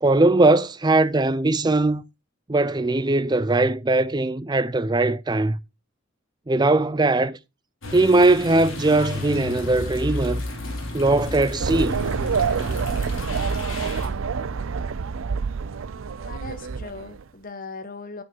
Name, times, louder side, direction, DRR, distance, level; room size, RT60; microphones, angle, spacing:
voice 1, 0.0-2.0 2.5-5.6 6.5-7.4 7.9-10.4 10.9-12.0, right 2 dB, 20° right, 0.5 m, -20 dB
sound 1, 7.8-14.1, left 1 dB, 70° left, 4.7 m, -32 dB
sound 2, 11.6-17.2, right 5 dB, 75° right, 0.5 m, -27 dB
voice 2, 16.2-18.2, left 3 dB, 40° left, 1.2 m, -38 dB
9.3 x 8.5 x 4.5 m
head